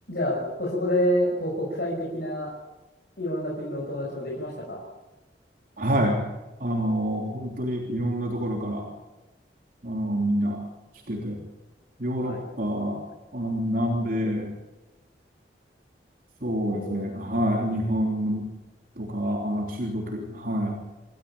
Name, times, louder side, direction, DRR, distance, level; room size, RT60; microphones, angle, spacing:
voice 1, 0.1-2.5 3.2-4.8 12.2-12.4 16.7-17.0, equal, 60° left, -3 dB, 5.6 m, -28 dB
voice 2, 5.8-6.2 6.6-8.9 9.8-10.6 11.1-11.4 12.0-13.0 13.3-14.5 16.4-18.5 19.0-20.8, equal, 55° right, 0 dB, 3.3 m, -27 dB
27.5 x 14.0 x 8.6 m, 1.1 s
head